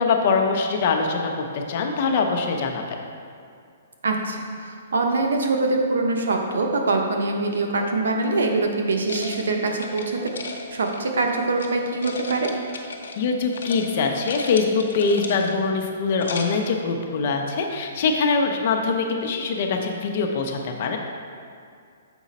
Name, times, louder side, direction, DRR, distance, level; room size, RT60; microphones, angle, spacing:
voice 1, 0.0-3.0 13.2-21.0, left 4 dB, 45° left, 3 dB, 0.8 m, -23 dB
voice 2, 4.0-10.3 10.7-12.5, right 3 dB, 85° right, 2 dB, 1.0 m, -24 dB
sound 1, 9.1-11.7 12.0-13.3 13.5-13.9 14.1-15.7 16.1-16.7, left 4 dB, 80° left, 0.9 m, -35 dB
7.0 x 5.0 x 4.2 m, 2.3 s
hypercardioid pair, 160°, 0 cm